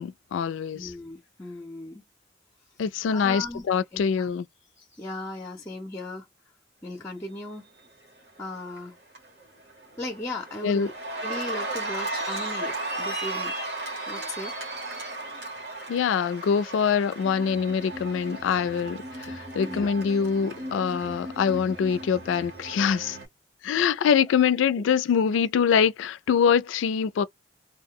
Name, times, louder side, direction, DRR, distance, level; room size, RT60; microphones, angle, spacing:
voice 1, 0.0-0.9 2.8-4.4 10.6-10.9 15.9-23.2 23.6-27.2, left 7 dB, 90° left, 0.3 m, -24 dB
voice 2, 0.7-2.0 2.8-3.6 3.9-4.3 4.8-6.3 6.8-7.7 8.4-9.0 10.0-10.9 11.2-13.5 14.1-14.6 19.6-19.9 24.7-24.8, left 2 dB, 15° left, 0.5 m, -37 dB
Cheering, 8.4-8.8 9.1-23.3, right 2 dB, 60° right, 1.0 m, -35 dB
2.2 x 2.0 x 3.6 m
head